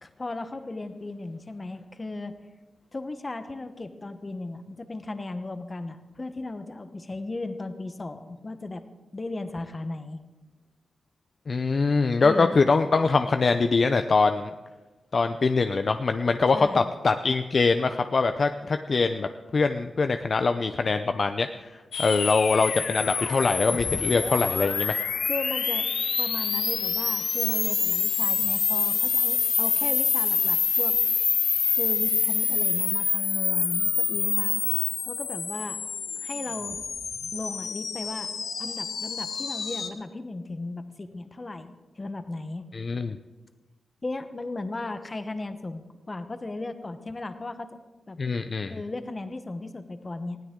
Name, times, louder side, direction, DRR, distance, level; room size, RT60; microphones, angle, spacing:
voice 1, 0.0-2.3 2.9-8.8 9.1-10.2 12.2-12.6 16.5-16.9 25.2-25.9 26.2-31.0 31.7-34.6 35.0-35.8 36.2-36.8 37.3-38.3 38.6-42.7 44.0-47.7 48.1-48.2 48.7-50.4, left 2 dB, 25° left, 9 dB, 1.0 m, -36 dB
voice 2, 11.5-14.5 15.1-25.0 42.7-43.2 48.2-48.7, left 4 dB, 45° left, 8 dB, 0.5 m, -23 dB
sound 1, 21.9-39.9, left 6 dB, 75° left, 1.4 m, -26 dB
20.0 x 16.0 x 3.8 m, 1.2 s
wide cardioid pair, 120°, 0 cm